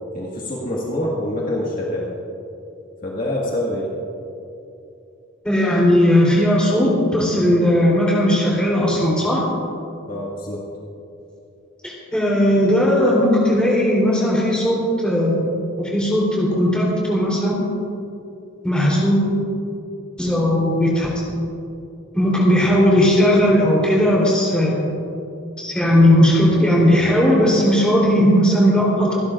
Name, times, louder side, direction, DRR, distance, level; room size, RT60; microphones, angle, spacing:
voice 1, 0.1-2.1 3.0-3.9 10.1-10.7, left 1 dB, 40° left, -4 dB, 1.7 m, -25 dB
voice 2, 5.4-9.4 11.8-15.5 15.8-17.6 18.6-19.2 20.2-21.1 22.1-24.9 25.6-29.2, equal, 5° left, -5 dB, 3.4 m, -17 dB
26.5 x 11.5 x 2.5 m, 2.7 s
head